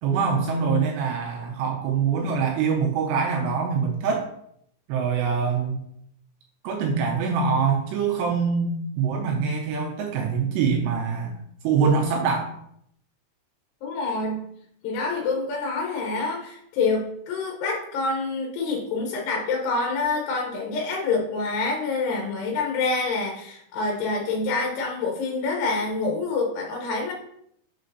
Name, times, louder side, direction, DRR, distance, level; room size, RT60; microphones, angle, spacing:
voice 1, 0.0-4.3 4.9-5.8 6.6-11.3 11.6-12.5, right 5 dB, 85° right, 0 dB, 2.5 m, -24 dB
voice 2, 13.8-14.4 14.8-27.1, left 3 dB, 75° left, -1 dB, 2.6 m, -27 dB
6.6 x 6.2 x 2.7 m, 0.72 s
omnidirectional pair, 5.6 m